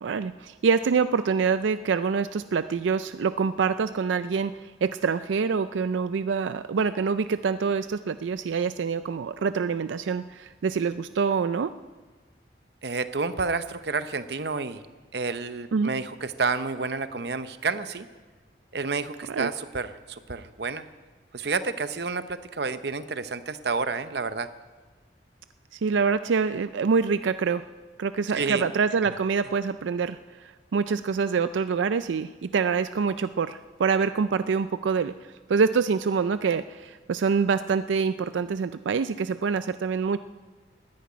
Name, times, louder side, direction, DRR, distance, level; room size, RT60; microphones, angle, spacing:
voice 1, 0.0-11.7 15.7-15.9 19.3-19.5 25.7-27.6 28.0-40.2, right 5 dB, 90° right, 12 dB, 0.4 m, -26 dB
voice 2, 12.8-14.8 15.1-18.1 18.7-20.9 21.3-24.5 28.3-28.6, right 4 dB, 60° right, 12 dB, 0.7 m, -30 dB
14.0 x 10.0 x 9.6 m, 1.3 s
head